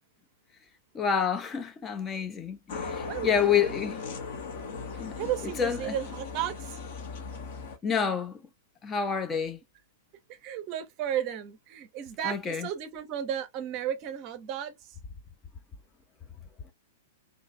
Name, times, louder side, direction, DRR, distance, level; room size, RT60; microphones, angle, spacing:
voice 1, 0.9-4.0 5.0-5.2 5.6-5.9 7.8-8.4 8.8-9.6 12.2-12.7, left 7 dB, 20° left, 0.4 m, -28 dB
sound 1, 2.7-7.8, left 4 dB, 50° left, 0.8 m, -38 dB
voice 2, 3.0-3.7 4.9-6.8 10.3-15.0, right 10 dB, 35° right, 0.6 m, -34 dB
2.6 x 2.3 x 2.5 m
figure-of-eight pair, 100°, 0 cm